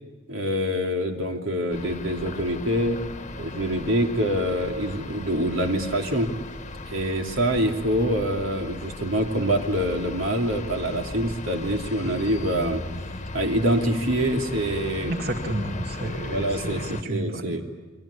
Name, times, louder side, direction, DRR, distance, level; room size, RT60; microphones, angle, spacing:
voice 1, 0.3-3.0 3.4-6.3 6.9-12.8 13.3-15.1 16.3-17.6, equal, 85° right, 2 dB, 3.1 m, -25 dB
sound 1, 1.7-17.0, left 2 dB, 35° left, 1.2 m, -37 dB
voice 2, 15.1-17.6, right 1 dB, 55° right, 3 dB, 2.3 m, -31 dB
30.0 x 23.5 x 8.5 m, 1.2 s
head